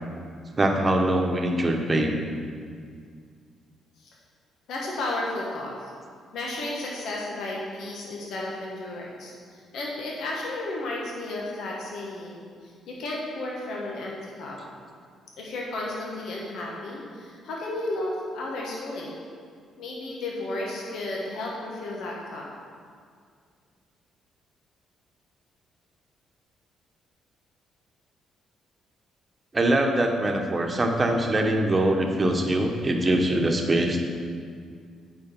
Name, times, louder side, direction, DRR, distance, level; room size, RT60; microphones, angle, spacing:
voice 1, 0.6-2.2 29.5-34.0, right 1 dB, 30° right, 3 dB, 1.1 m, -23 dB
voice 2, 4.7-5.9 6.3-14.6 15.4-19.1 19.8-22.4, left 2 dB, 75° left, -3 dB, 1.3 m, -33 dB
8.5 x 4.7 x 5.5 m, 2.1 s
supercardioid pair, 70°, 0 cm